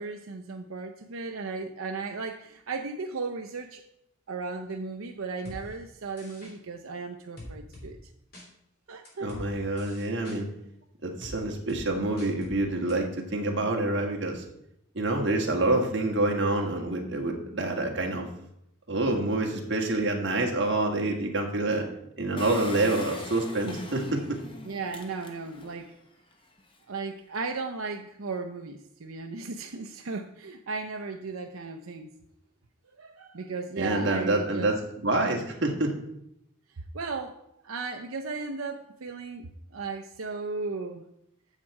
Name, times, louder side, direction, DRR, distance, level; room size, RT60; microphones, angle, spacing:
voice 1, 0.0-3.8 4.3-8.1 8.9-9.4 22.8-23.0 24.6-25.9 26.9-32.1 33.0-34.7 36.7-37.4 37.6-41.0, right 4 dB, 85° right, 5 dB, 0.7 m, -36 dB
sound 1, 5.5-5.6 6.2-6.5 7.4-7.9 8.3-8.5 9.1-9.4 9.8-10.4 11.2-11.4 11.7-11.8 12.2-12.6 12.9-13.0, left 1 dB, 45° left, 3.1 m, -43 dB
voice 2, 9.2-10.5 11.0-14.4 14.9-18.3 18.9-21.9 22.2-24.4 33.8-35.9, right 2 dB, 55° right, 1 dB, 1.7 m, -27 dB
Engine, 22.4-25.8 26.3-26.4 26.6-26.7, left 2 dB, 25° left, 1.0 m, -40 dB
9.0 x 7.4 x 4.7 m, 0.78 s
head